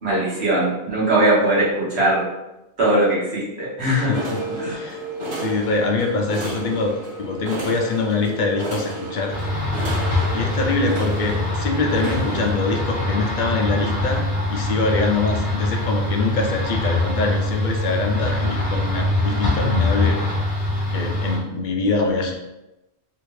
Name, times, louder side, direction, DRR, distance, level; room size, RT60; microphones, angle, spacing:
voice 1, 0.0-2.3 2.8-4.1 4.6-4.8, right 1 dB, 70° right, -7 dB, 1.4 m, -20 dB
voice 2, 3.8-5.0 5.3-9.3 10.3-14.2 14.5-20.2 20.9-22.3, left 3 dB, 55° left, 2 dB, 0.6 m, -24 dB
sound 1, 3.9-12.6, right 2 dB, 30° right, 0.7 m, -32 dB
sound 2, 9.3-21.4, left 2 dB, 75° left, 1.3 m, -23 dB
3.5 x 2.5 x 3.1 m, 0.95 s
omnidirectional pair, 1.1 m